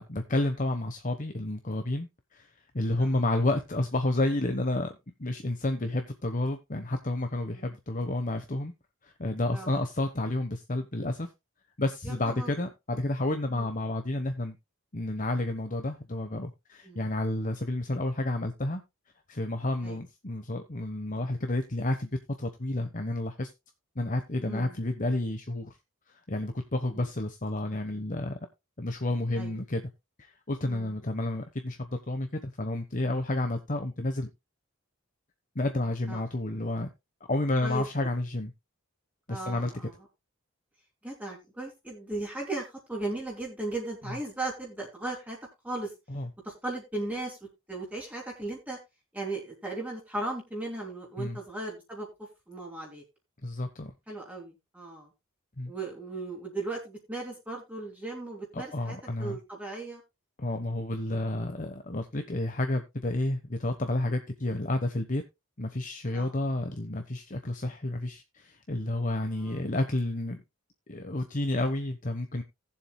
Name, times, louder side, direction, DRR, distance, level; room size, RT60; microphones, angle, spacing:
voice 1, 0.0-8.7 9.0-11.3 11.8-14.6 14.9-18.8 19.3-22.1 22.4-23.5 23.9-25.8 26.1-28.4 28.8-29.9 30.2-34.3 35.5-36.9 37.3-38.5 39.3-39.9 46.1-46.3 51.2-51.4 53.4-53.9 55.6-55.7 58.5-59.4 60.4-65.2 65.6-70.4 70.9-72.4, left 1 dB, 35° left, 1.0 m, -30 dB
voice 2, 12.0-12.5 13.5-13.7 16.8-17.0 19.8-20.0 24.4-24.8 27.0-27.1 29.3-29.6 30.6-31.0 36.1-36.2 37.6-37.8 39.3-39.9 41.0-45.4 45.6-45.9 46.4-47.4 47.7-48.8 49.1-52.1 52.5-53.0 54.1-55.1 55.7-60.0 66.1-66.3 69.3-69.6, right 2 dB, 5° right, 3.1 m, -37 dB
19.0 x 7.4 x 2.2 m
head